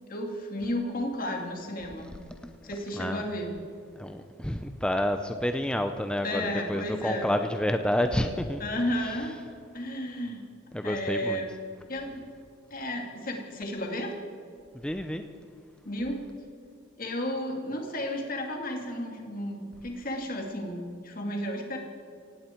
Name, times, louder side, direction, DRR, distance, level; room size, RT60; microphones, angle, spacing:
voice 1, 0.1-2.1 2.6-3.6 6.2-7.3 8.6-9.3 9.7-10.4 10.8-11.6 11.9-12.2 12.7-14.2 15.8-16.2 17.0-21.8, left 1 dB, 45° left, 2 dB, 2.4 m, -33 dB
voice 2, 4.0-8.6 10.7-11.4 14.8-15.2, left 1 dB, 5° left, 7 dB, 0.5 m, -29 dB
17.5 x 17.0 x 4.5 m, 2.3 s
head